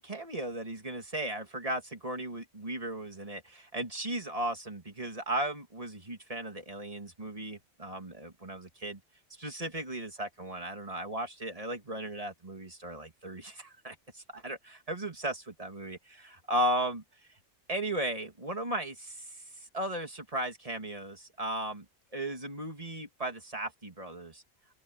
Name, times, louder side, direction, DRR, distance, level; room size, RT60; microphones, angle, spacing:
voice 1, 0.0-9.0 9.4-17.0 17.7-19.4 19.7-21.8 22.1-24.4, right 1 dB, 30° right, 2.7 m, -36 dB
open air
omnidirectional pair, 1.3 m